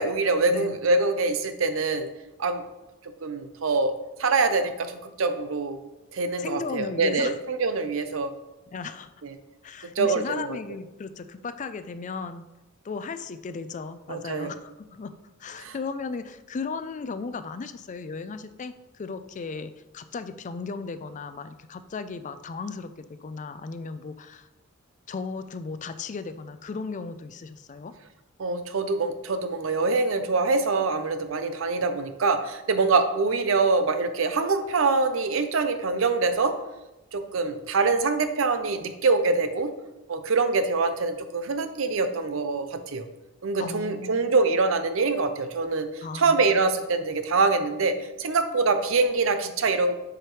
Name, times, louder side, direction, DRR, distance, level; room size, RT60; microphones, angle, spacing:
voice 1, 0.0-2.1 2.4-2.6 3.2-3.9 4.2-5.8 6.1-8.3 9.2-9.3 10.0-10.6 14.1-14.5 15.6-15.7 28.4-36.6 37.1-39.7 40.1-43.1 43.4-49.9, right 3 dB, 70° right, 9 dB, 0.6 m, -24 dB
voice 2, 6.4-7.4 8.7-9.1 9.6-12.4 12.8-15.1 15.4-22.9 23.2-24.5 25.1-27.9 43.6-44.4 46.0-46.7, left 4 dB, 35° left, 12 dB, 0.4 m, -36 dB
7.6 x 5.0 x 3.1 m, 1.0 s
head